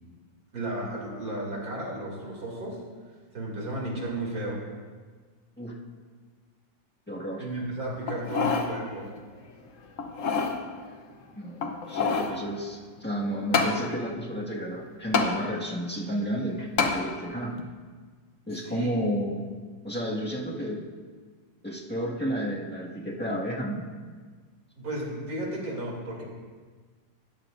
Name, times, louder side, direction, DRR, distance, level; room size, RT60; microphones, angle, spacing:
voice 1, 0.5-2.8 3.3-4.6 7.4-9.1 18.5-18.9 24.8-26.2, right 1 dB, 50° right, -3 dB, 3.3 m, -34 dB
voice 2, 7.1-7.4 11.3-17.6 18.5-19.5 19.8-20.8 21.6-23.9, equal, 5° left, -5 dB, 1.4 m, -31 dB
sound 1, 8.1-8.7 9.2-9.3 10.0-10.6 11.6-12.4 13.5-13.8 15.1-15.3 16.8-17.0 17.6-17.7, left 5 dB, 50° left, 1.1 m, -25 dB
14.0 x 10.5 x 2.6 m, 1.5 s
omnidirectional pair, 2.1 m